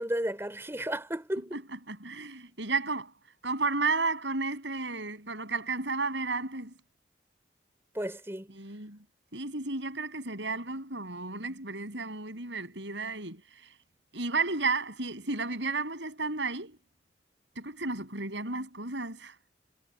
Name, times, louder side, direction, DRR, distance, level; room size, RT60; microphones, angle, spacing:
voice 1, 0.0-1.6 7.9-8.5, right 1 dB, 15° right, 3.3 m, -33 dB
voice 2, 1.5-3.1 3.4-6.7 8.5-9.0 9.3-13.7 14.1-16.8 17.6-19.4, right 3 dB, 85° right, 7.5 m, -33 dB
head